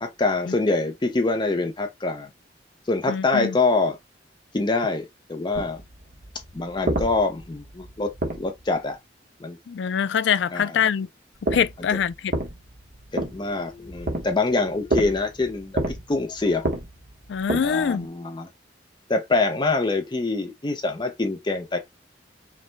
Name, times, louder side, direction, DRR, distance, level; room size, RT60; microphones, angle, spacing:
voice 1, 0.0-2.3 2.9-4.0 4.5-5.8 6.5-9.0 9.4-9.6 10.5-10.8 13.1-16.7 17.6-18.5 19.1-21.8, left 3 dB, 25° left, 0.6 m, -25 dB
voice 2, 3.1-3.6 9.7-11.1 11.5-12.3 17.3-18.1, left 7 dB, 70° left, 0.4 m, -24 dB
sound 1, 5.5-8.9 11.4-18.1, right 1 dB, 55° right, 1.1 m, -31 dB
5.2 x 2.2 x 3.3 m
head